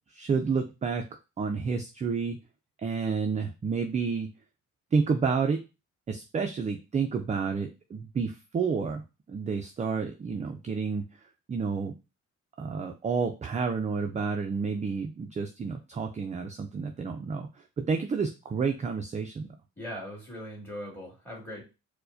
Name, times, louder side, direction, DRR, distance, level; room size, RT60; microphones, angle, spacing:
voice 1, 0.1-1.1 1.4-2.4 2.8-4.3 4.9-5.6 6.1-9.0 9.3-11.0 11.5-11.9 12.6-19.5, right 5 dB, 25° right, 5 dB, 0.4 m, -30 dB
voice 2, 19.8-21.6, equal, 5° left, -2 dB, 2.1 m, -40 dB
4.4 x 2.1 x 2.6 m, 0.28 s
cardioid pair, 90°, 30 cm